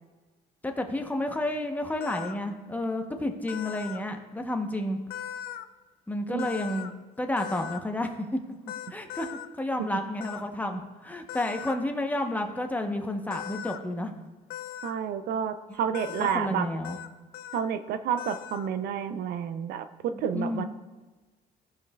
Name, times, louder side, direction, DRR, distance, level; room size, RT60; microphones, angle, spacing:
voice 1, 0.6-5.0 6.1-6.9 7.2-8.4 8.9-14.3 15.7-15.8 16.2-17.0 20.1-20.7, left 1 dB, 10° left, 5 dB, 0.8 m, -31 dB
sound 1, 2.0-2.4 3.5-4.0 5.1-5.7 6.4-6.9 7.4-7.8 8.7-9.5 10.2-10.4 11.3-11.8 13.3-13.8 14.5-14.9 15.9-16.4 16.8-17.1 17.3-17.7 18.2-18.7, left 11 dB, 65° left, 0.5 m, -39 dB
voice 2, 14.8-16.7 17.5-19.9 20.2-20.6, right 8 dB, 70° right, 11 dB, 0.5 m, -30 dB
15.5 x 5.4 x 2.3 m, 1.3 s
cardioid pair, 110°, 17 cm